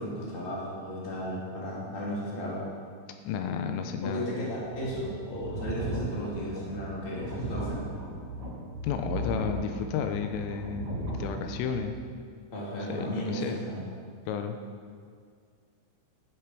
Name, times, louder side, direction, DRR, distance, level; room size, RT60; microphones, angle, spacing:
voice 1, 0.0-2.6 4.0-7.9 12.5-13.8, equal, 20° left, -6 dB, 1.8 m, -34 dB
voice 2, 3.2-4.3 8.8-11.9 12.9-13.6 14.3-14.6, left 7 dB, 85° left, 6 dB, 3.3 m, -32 dB
sound 1, 4.6-11.9, right 1 dB, 50° right, 3.7 m, -37 dB
11.5 x 10.5 x 4.9 m, 2.1 s
omnidirectional pair, 5.9 m